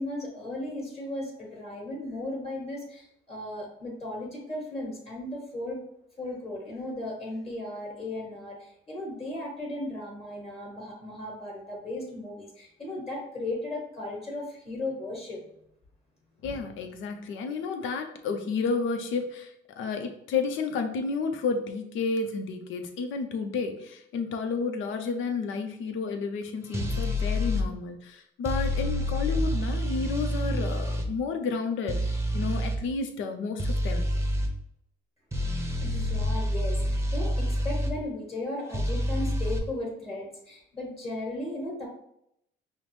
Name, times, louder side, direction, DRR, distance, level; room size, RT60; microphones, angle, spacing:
voice 1, 0.0-5.8 6.2-15.4 35.8-41.9, left 1 dB, 30° left, -3 dB, 1.6 m, -36 dB
voice 2, 16.4-34.1, left 4 dB, 80° left, 6 dB, 0.6 m, -31 dB
sound 1, 26.7-27.6 28.4-31.1 31.9-32.8 33.6-34.5 35.3-37.9 38.7-39.6, left 1 dB, 15° right, 0.7 m, -28 dB
5.6 x 2.0 x 3.2 m, 0.75 s
cardioid pair, 90°, 20 cm